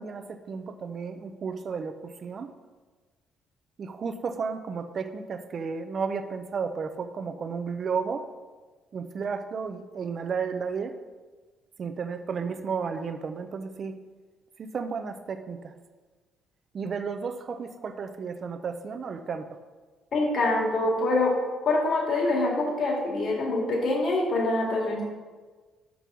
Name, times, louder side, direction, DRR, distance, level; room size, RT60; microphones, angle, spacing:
voice 1, 0.0-1.9 2.2-2.5 3.8-8.2 8.9-10.9 11.8-13.9 14.7-15.6 16.7-19.4, right 5 dB, 40° right, 9 dB, 0.6 m, -33 dB
voice 2, 20.1-21.3 21.7-25.0, left 2 dB, 50° left, -2 dB, 2.0 m, -25 dB
6.1 x 5.3 x 6.1 m, 1.4 s
cardioid pair, 125°, 0 cm